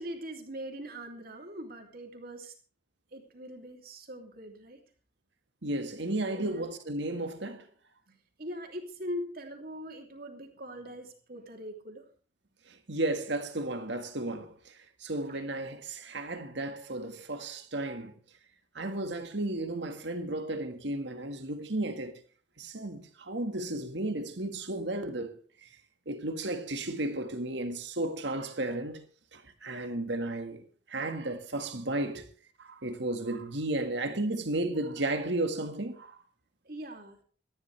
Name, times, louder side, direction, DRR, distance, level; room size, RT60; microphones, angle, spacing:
voice 1, 0.0-2.5 3.1-4.8 6.3-6.7 8.1-12.1 15.3-15.4 36.6-37.2, equal, 50° right, 3.0 m, -42 dB
voice 2, 5.6-7.7 12.7-18.1 18.8-22.2 22.6-25.3 25.6-25.7 26.1-29.0 29.3-32.3 32.6-36.2, right 2 dB, 65° right, 1.8 m, -34 dB
19.5 x 13.5 x 3.4 m
head